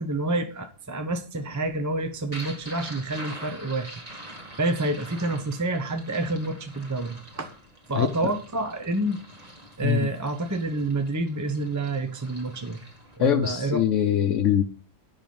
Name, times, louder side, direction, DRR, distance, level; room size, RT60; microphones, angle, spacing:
voice 1, 0.0-3.9 4.6-7.5 7.9-9.2 9.8-12.8 13.2-13.8, right 2 dB, 15° right, 6 dB, 0.8 m, -28 dB
sound 1, 1.4-13.2, right 1 dB, 30° right, 2.2 m, -44 dB
voice 2, 7.9-8.3 9.8-10.1 13.2-14.6, left 9 dB, 85° left, 5 dB, 1.1 m, -23 dB
9.0 x 5.8 x 7.0 m, 0.40 s
omnidirectional pair, 1.2 m